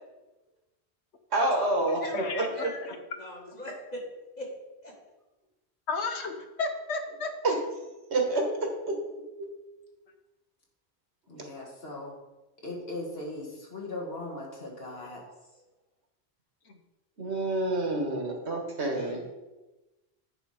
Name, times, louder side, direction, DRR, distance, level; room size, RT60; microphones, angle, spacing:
voice 1, 1.3-2.0 2.3-2.5 7.4-7.6 8.1-9.0 9.4-9.5 17.2-19.2, right 2 dB, 80° right, 2 dB, 1.7 m, -28 dB
voice 2, 1.9-3.0 5.9-7.3, left 3 dB, 80° left, 5 dB, 1.1 m, -33 dB
voice 3, 2.4-4.0 4.4-4.5 4.8-4.9 14.9-15.2 18.8-19.3, left 1 dB, 40° left, -2 dB, 1.9 m, -41 dB
voice 4, 11.3-12.1 12.6-15.2, left 2 dB, 65° left, -2 dB, 2.1 m, -38 dB
9.9 x 4.3 x 4.9 m, 1.1 s
omnidirectional pair, 1.1 m